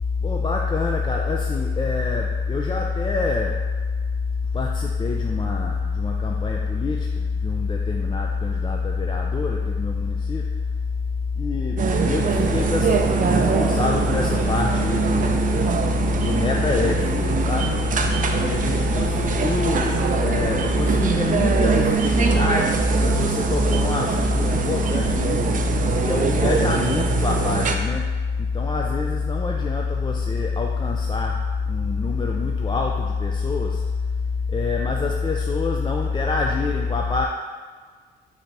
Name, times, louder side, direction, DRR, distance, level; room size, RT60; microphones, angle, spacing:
voice 1, 0.2-3.6 4.5-10.5 11.4-15.4 16.2-17.8 18.4-25.5 26.0-28.1 28.4-33.8 34.5-37.3, left 4 dB, 25° left, 0 dB, 0.4 m, -24 dB
sound 1, 11.8-27.8, right 6 dB, 40° right, 0.5 m, -23 dB
4.0 x 2.9 x 4.5 m, 1.5 s
cardioid pair, 90°, 20 cm